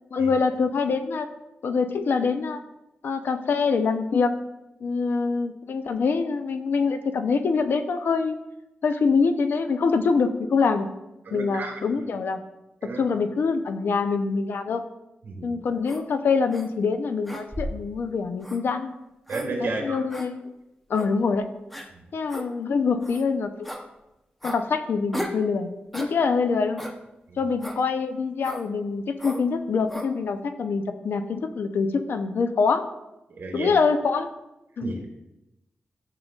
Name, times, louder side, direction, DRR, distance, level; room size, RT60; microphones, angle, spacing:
voice 1, 0.1-1.3 1.6-2.6 3.0-4.3 4.8-8.4 8.8-10.9 11.3-12.4 13.0-14.8 15.4-18.9 19.6-20.5 20.9-21.5 22.1-23.5 24.4-26.8 27.4-32.8 33.5-34.3 34.8-34.9, left 5 dB, 70° left, 8 dB, 0.6 m, -25 dB
voice 2, 11.3-12.0 12.8-13.0 15.2-15.5 19.3-20.0 21.9-22.0 27.3-27.4 33.3-33.7 34.8-35.0, right 2 dB, 65° right, 1 dB, 1.8 m, -32 dB
sound 1, 15.9-16.0 16.5-16.7 17.3-17.8 18.4-18.6 19.3-19.5 20.1-20.3 20.9-21.1 21.7-21.9 22.3-22.5 23.0-23.2 23.6-23.8 24.4-24.6 25.1-25.4 25.9-26.1 26.8-27.0 27.6-27.8 28.4-28.7 29.2-29.4 29.9-30.1, equal, 5° left, 0.8 m, -35 dB
12.5 x 6.7 x 2.4 m, 0.94 s
wide cardioid pair, 140°, 4 cm